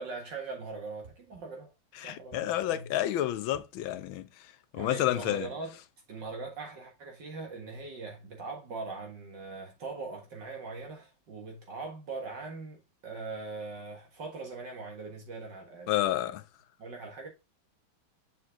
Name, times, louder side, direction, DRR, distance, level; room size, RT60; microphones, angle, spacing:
voice 1, 0.0-1.7 2.0-2.9 4.7-5.7 6.1-15.9 16.2-16.3 16.8-17.3, right 3 dB, 60° right, 2.1 m, -41 dB
sound 1, 1.0-1.7 2.3-2.9 3.5-4.2 4.8-5.4, right 8 dB, 35° right, 2.2 m, -57 dB
voice 2, 2.0-5.5 15.9-16.4, left 13 dB, 80° left, 1.4 m, -30 dB
6.9 x 4.5 x 3.6 m
omnidirectional pair, 2.2 m